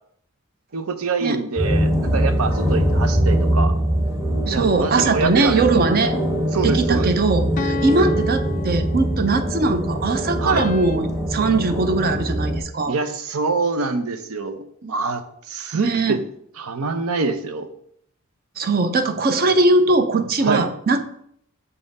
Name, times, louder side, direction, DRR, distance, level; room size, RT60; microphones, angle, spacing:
voice 1, 0.7-3.7 4.5-5.6 6.5-7.1 10.4-10.6 12.9-16.2 16.6-17.7 20.4-20.7, right 4 dB, 85° right, 10 dB, 0.7 m, -25 dB
sound 1, 1.6-12.6, equal, 15° right, 1.2 m, -22 dB
voice 2, 4.4-6.2 6.6-12.9 15.7-16.2 18.6-21.0, right 3 dB, 45° right, 9 dB, 0.6 m, -20 dB
sound 2, 5.4-6.4 7.6-9.5 10.6-11.0, left 4 dB, 40° left, 0.3 m, -32 dB
6.7 x 3.7 x 5.3 m, 0.69 s
head